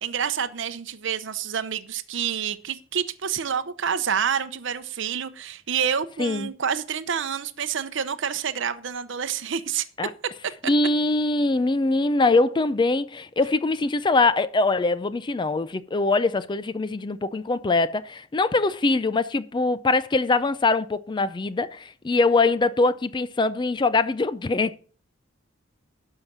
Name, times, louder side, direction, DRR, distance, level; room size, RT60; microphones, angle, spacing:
voice 1, 0.0-9.9, right 7 dB, 65° right, 0.7 m, -28 dB
voice 2, 6.2-6.5 10.0-10.1 10.7-24.8, left 3 dB, 25° left, 0.4 m, -23 dB
12.0 x 5.7 x 6.0 m
head